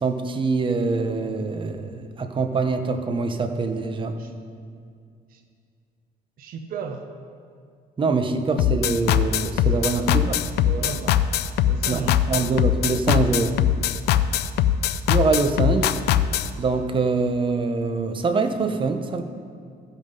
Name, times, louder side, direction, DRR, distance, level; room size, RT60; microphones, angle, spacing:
voice 1, 0.0-4.2 8.0-10.4 11.9-13.6 15.1-15.9 16.6-19.2, right 4 dB, 30° right, 7 dB, 0.8 m, -24 dB
voice 2, 6.4-7.1 9.7-10.1 10.6-11.2 11.6-12.2, right 6 dB, 60° right, 5 dB, 0.7 m, -35 dB
sound 1, 8.6-16.5, left 11 dB, 75° left, 0.4 m, -21 dB
14.0 x 5.4 x 5.4 m, 2.2 s
cardioid pair, 110°, 17 cm